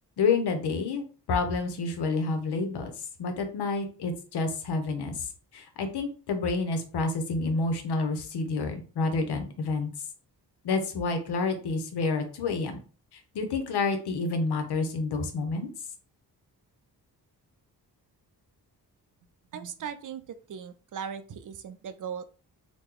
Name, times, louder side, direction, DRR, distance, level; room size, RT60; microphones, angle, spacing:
voice 1, 0.2-2.9 3.2-5.3 5.5-9.9 10.6-12.8 13.3-15.7, left 3 dB, 75° left, 6 dB, 0.8 m, -29 dB
voice 2, 19.5-22.3, right 7 dB, 50° right, 11 dB, 0.5 m, -38 dB
3.0 x 2.2 x 3.6 m, 0.37 s
cardioid pair, 75°, 40 cm